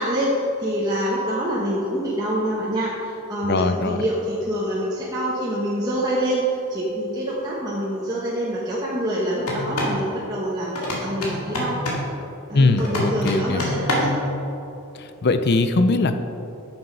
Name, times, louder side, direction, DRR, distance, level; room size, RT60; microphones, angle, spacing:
voice 1, 0.0-11.8 12.5-14.2, right 1 dB, 20° right, -7 dB, 1.1 m, -26 dB
voice 2, 3.4-4.0 12.5-13.6 14.9-16.2, left 3 dB, 45° left, 9 dB, 0.5 m, -20 dB
sound 1, 9.4-10.0 10.7-12.1 12.8-14.2, left 1 dB, 85° left, 2.2 m, -26 dB
9.3 x 7.2 x 5.5 m, 2.8 s
head